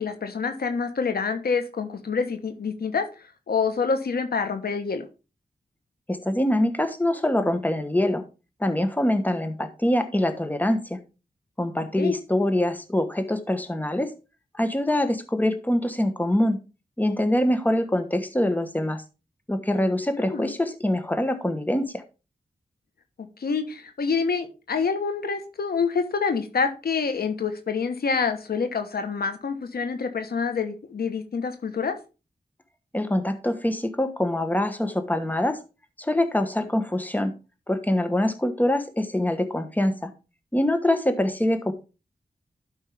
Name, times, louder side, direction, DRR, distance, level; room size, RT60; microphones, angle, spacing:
voice 1, 0.0-3.1 3.5-5.0 12.0-12.1 20.1-20.5 23.4-31.9, left 5 dB, 80° left, 7 dB, 1.2 m, -27 dB
voice 2, 6.1-8.2 8.6-11.0 11.6-14.1 14.6-16.6 17.0-19.0 19.5-22.0 32.9-35.6 36.0-37.3 37.7-40.1 40.5-41.7, left 1 dB, 10° left, 9 dB, 1.2 m, -24 dB
12.0 x 5.3 x 3.5 m, 0.31 s
cardioid pair, 65°, 16 cm